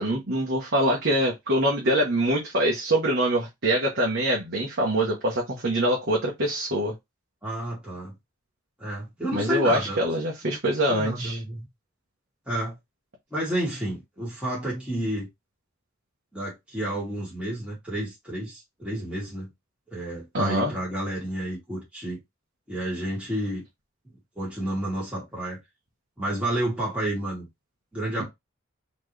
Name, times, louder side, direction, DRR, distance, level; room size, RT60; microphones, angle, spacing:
voice 1, 0.0-6.9 9.3-11.4 20.3-20.7 28.2-28.3, right 1 dB, 55° right, 1.1 m, -24 dB
voice 2, 7.4-8.1 8.8-10.0 10.5-10.6 10.9-11.7 12.5-12.8 13.3-15.3 16.3-19.5 19.9-22.2 22.7-23.6 24.4-25.6 26.2-27.5 27.9-28.3, right 1 dB, 5° right, 2.2 m, -30 dB
4.3 x 3.1 x 3.2 m
head